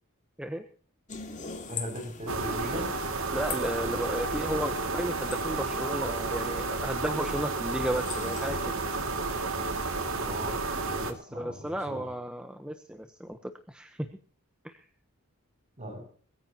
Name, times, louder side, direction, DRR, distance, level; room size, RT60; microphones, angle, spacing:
sound 1, 1.1-8.9, left 6 dB, 35° left, 2.4 m, -44 dB
voice 1, 1.7-2.9 10.2-12.1 15.8-16.0, equal, 30° right, 3 dB, 6.6 m, -38 dB
sound 2, 2.3-11.1, right 3 dB, 60° right, 2.4 m, -31 dB
voice 2, 3.3-8.8 11.0-14.1 14.6-14.8, equal, 5° right, 6 dB, 1.0 m, -34 dB
22.0 x 14.5 x 3.0 m, 0.44 s
head